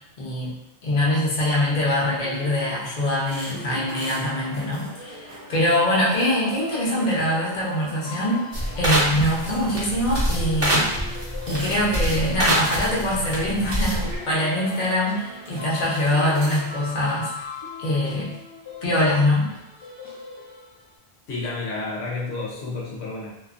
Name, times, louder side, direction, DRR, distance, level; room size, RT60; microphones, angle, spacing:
voice 1, 0.2-0.5 0.8-8.4 8.8-10.9 11.5-17.3 17.8-18.3 18.8-19.5, left 1 dB, 50° left, -6 dB, 0.9 m, -23 dB
sound 1, 2.2-20.9, left 3 dB, 35° left, 0.5 m, -41 dB
sound 2, 3.3-16.8, right 1 dB, 60° right, 0.9 m, -41 dB
sound 3, 8.5-14.2, equal, 30° right, 0.7 m, -25 dB
voice 2, 21.3-23.3, left 3 dB, 90° left, -4 dB, 0.9 m, -30 dB
2.4 x 2.4 x 2.4 m, 0.87 s
omnidirectional pair, 1.1 m